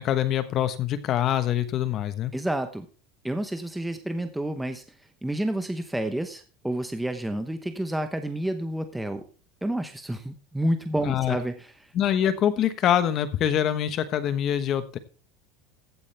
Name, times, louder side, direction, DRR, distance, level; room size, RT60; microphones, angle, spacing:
voice 1, 0.0-2.3 11.0-11.4 11.9-15.0, left 10 dB, 40° left, 12 dB, 1.1 m, -24 dB
voice 2, 2.3-2.9 3.2-4.8 5.2-9.2 9.6-11.7, right 1 dB, 5° right, 8 dB, 0.9 m, -29 dB
15.5 x 8.4 x 3.4 m, 0.37 s
supercardioid pair, 140°, 0 cm